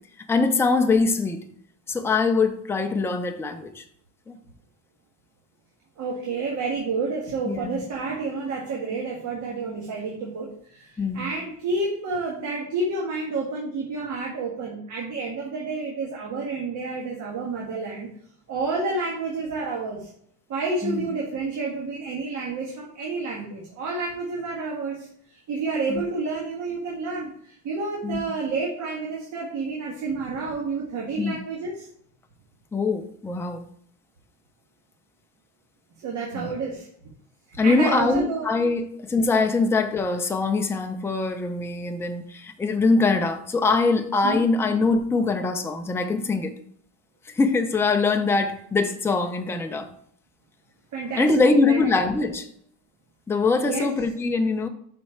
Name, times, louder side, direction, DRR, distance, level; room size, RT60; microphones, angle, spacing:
voice 1, 0.3-1.4 1.9-3.8 4.3-4.4 7.5-7.9 11.0-11.3 20.8-21.1 25.9-26.0 28.0-28.2 31.2-31.4 32.7-33.7 36.4-36.5 37.6-46.5 47.3-49.9 51.2-52.5 53.3-54.7, left 3 dB, 5° left, 0.4 m, -23 dB
voice 2, 6.0-18.1 18.5-20.1 20.5-31.9 36.0-36.9 37.6-38.5 44.2-44.4 50.9-51.8 53.6-53.9, right 3 dB, 45° right, 1.5 m, -30 dB
5.6 x 4.3 x 4.4 m
cardioid pair, 145°, 41 cm